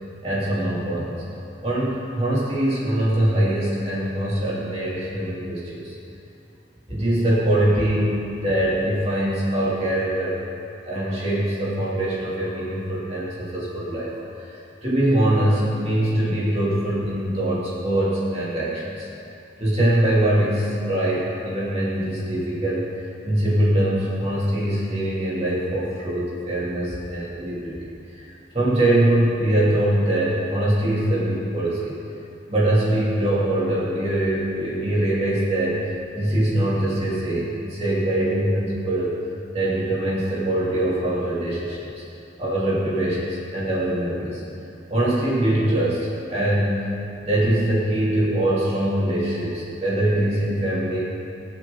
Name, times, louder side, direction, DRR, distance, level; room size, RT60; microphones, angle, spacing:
voice 1, 0.2-1.2 1.6-5.9 6.9-8.1 8.4-10.4 10.9-14.1 14.4-14.5 14.8-19.1 19.6-22.8 23.2-27.8 28.1-28.2 28.5-31.9 32.5-35.8 36.1-39.2 39.5-41.9 42.4-44.4 44.9-46.8 47.2-51.0, right 1 dB, 35° right, -7 dB, 2.9 m, -23 dB
21.5 x 7.7 x 4.0 m, 2.7 s
head